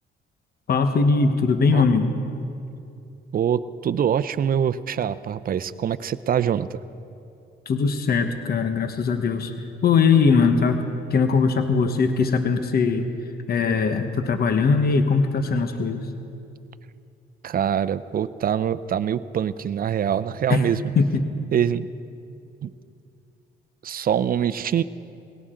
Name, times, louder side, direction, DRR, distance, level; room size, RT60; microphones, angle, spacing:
voice 1, 0.7-2.1 7.7-9.5 9.8-10.8 11.1-13.1 13.5-16.1 20.5-20.7 20.9-21.2, left 5 dB, 50° left, 7 dB, 1.2 m, -20 dB
voice 2, 3.3-6.8 17.4-20.8 21.5-21.9 22.6-22.7 23.8-24.8, right 9 dB, 45° right, 15 dB, 0.5 m, -24 dB
20.0 x 17.0 x 3.8 m, 2.6 s
cardioid pair, 90°, 20 cm